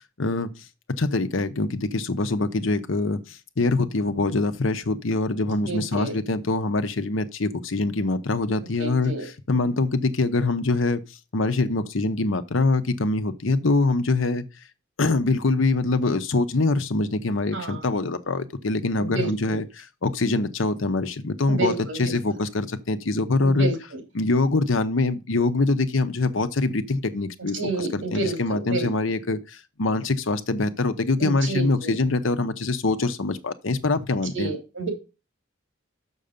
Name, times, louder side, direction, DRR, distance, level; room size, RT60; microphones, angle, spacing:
voice 1, 0.2-0.5 1.0-11.0 11.3-14.5 15.0-23.7 24.1-34.5, left 3 dB, 90° left, 0.9 m, -24 dB
voice 2, 5.7-6.1 8.8-9.3 17.5-17.8 19.0-19.6 21.5-22.1 23.4-23.7 27.5-28.9 31.2-31.9 34.3-34.9, right 3 dB, 75° right, 3.1 m, -29 dB
6.8 x 6.4 x 5.1 m
head